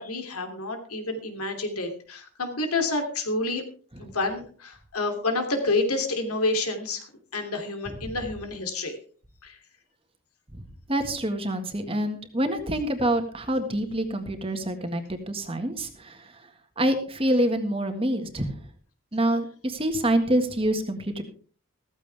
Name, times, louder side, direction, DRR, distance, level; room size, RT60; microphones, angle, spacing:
voice 1, 0.0-3.6 4.0-7.1 7.3-9.0 9.4-9.6, left 2 dB, 85° left, 5 dB, 2.9 m, -29 dB
voice 2, 10.9-16.5 16.8-18.6 19.1-21.2, right 1 dB, 25° right, 6 dB, 1.7 m, -26 dB
15.0 x 14.5 x 3.4 m, 0.41 s
head